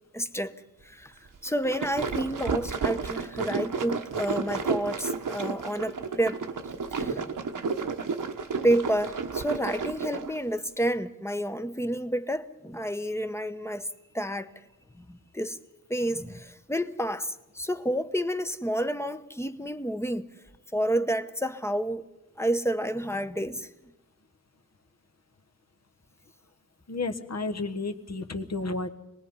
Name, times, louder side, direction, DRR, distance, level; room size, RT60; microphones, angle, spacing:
voice 1, 0.1-0.5 0.8-1.1 1.4-6.4 6.9-7.3 8.6-13.9 14.1-14.5 14.9-15.6 15.9-20.3 20.7-22.0 22.4-23.7, right 1 dB, 10° left, 0.9 m, -29 dB
sound 1, 1.5-10.4, right 5 dB, 70° right, 1.1 m, -32 dB
voice 2, 26.9-28.9, left 3 dB, 50° left, 1.4 m, -32 dB
26.0 x 19.5 x 5.5 m
wide cardioid pair, 125°, 33 cm